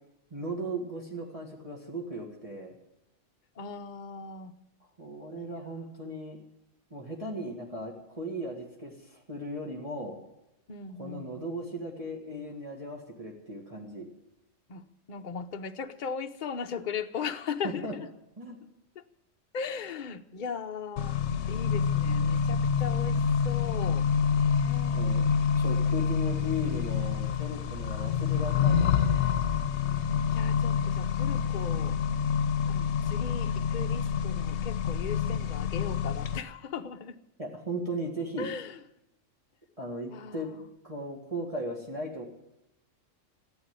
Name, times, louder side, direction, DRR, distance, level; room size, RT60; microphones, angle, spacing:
voice 1, 0.3-2.7 5.0-6.4 6.9-10.2 11.0-14.1 17.6-17.9 18.4-18.6 24.9-25.3 25.5-29.4 37.4-38.5 39.8-40.5 40.8-42.2, right 1 dB, 25° right, -3 dB, 2.1 m, -37 dB
voice 2, 3.6-4.5 5.4-5.5 10.7-11.5 14.7-18.1 19.0-19.1 19.5-21.2 21.5-24.1 24.3-25.0 30.3-32.0 32.7-37.2 38.4-38.8 40.1-40.7, left 6 dB, 45° left, 7 dB, 0.9 m, -38 dB
Accelerating revving vroom, 21.0-36.4, left 7 dB, 65° left, 1.1 m, -27 dB
15.5 x 9.0 x 9.5 m, 0.86 s
omnidirectional pair, 1.3 m